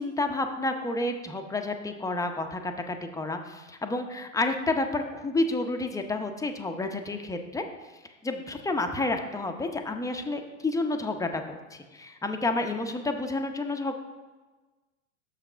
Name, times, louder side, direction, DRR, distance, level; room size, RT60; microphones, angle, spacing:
voice 1, 0.0-7.6 8.2-11.4 11.7-14.0, left 2 dB, 10° left, 5 dB, 0.8 m, -30 dB
6.7 x 5.9 x 5.0 m, 1.2 s
hypercardioid pair, 90°, 38 cm